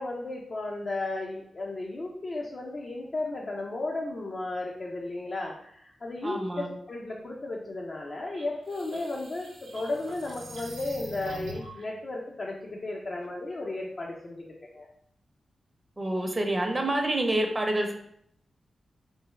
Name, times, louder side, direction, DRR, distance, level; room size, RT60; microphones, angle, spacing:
voice 1, 0.0-14.9, left 2 dB, 55° left, -2 dB, 0.5 m, -34 dB
voice 2, 6.2-6.7 16.0-17.9, right 1 dB, 35° right, 3 dB, 0.6 m, -27 dB
sound 1, 8.3-11.8, right 1 dB, 80° right, 0.6 m, -43 dB
3.3 x 2.2 x 3.2 m, 0.71 s
supercardioid pair, 40°, 0 cm